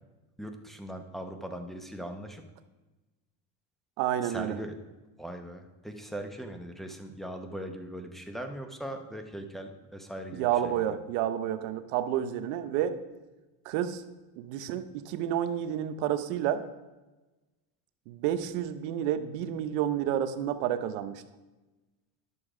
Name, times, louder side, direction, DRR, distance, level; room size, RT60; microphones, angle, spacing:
voice 1, 0.4-2.4 4.2-4.8 5.2-11.0, right 1 dB, ahead, 6 dB, 0.7 m, -40 dB
voice 2, 4.0-4.6 10.4-13.0 13.6-14.0 14.4-16.6 18.1-21.2, right 10 dB, 85° right, 10 dB, 0.9 m, -30 dB
11.5 x 6.5 x 4.9 m, 1.1 s
cardioid pair, 140°, 45 cm